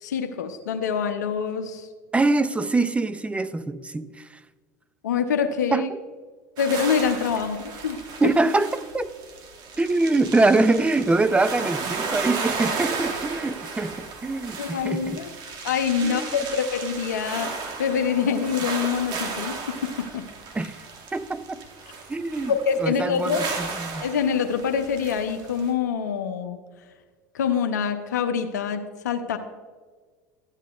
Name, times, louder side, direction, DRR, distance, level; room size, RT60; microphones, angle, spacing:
voice 1, 0.0-1.9 5.0-5.9 6.6-8.0 14.6-15.3 15.6-17.5 17.8-20.2 22.5-23.5 24.0-26.6 27.3-29.4, left 6 dB, 85° left, 8 dB, 0.6 m, -25 dB
voice 2, 2.1-4.4 5.7-5.9 8.2-9.1 9.8-15.2 16.0-16.3 20.5-20.8 21.1-21.6 22.1-22.5 22.8-24.1, right 2 dB, 15° right, 13 dB, 0.5 m, -24 dB
sound 1, 6.6-25.7, right 4 dB, 50° right, 1.4 m, -34 dB
13.0 x 8.2 x 2.4 m, 1.5 s
hypercardioid pair, 75°, 9 cm